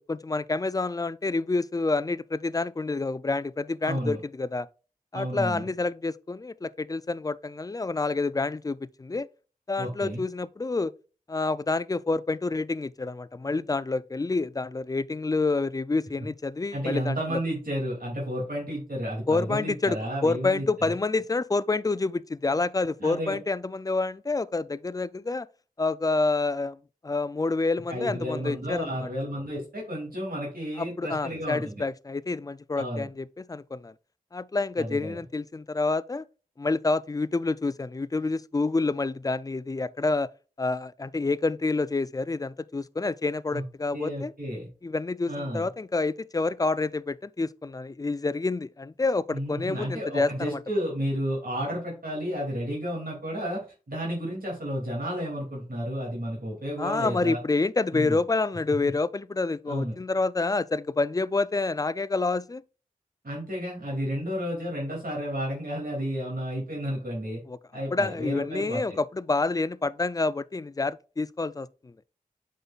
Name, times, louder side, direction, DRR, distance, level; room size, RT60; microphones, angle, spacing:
voice 1, 0.0-4.7 5.1-9.3 9.7-10.9 11.3-17.4 19.3-25.5 25.8-26.8 27.0-29.1 30.8-33.9 34.3-36.2 36.6-40.3 40.6-44.3 44.8-50.6 56.8-62.6 67.5-67.6 67.9-71.9, left 3 dB, 25° left, 0.3 m, -28 dB
voice 2, 3.8-4.2 5.1-5.7 9.8-10.2 16.7-20.7 23.0-23.3 27.9-31.8 32.7-33.1 34.8-35.2 43.5-43.6 43.9-44.7 45.3-45.7 49.3-53.6 53.9-57.4 57.9-58.2 58.8-58.9 59.7-59.9 63.2-67.4 67.7-69.0, equal, 75° right, 2.6 m, -32 dB
7.9 x 5.3 x 2.4 m
wide cardioid pair, 55°, 15 cm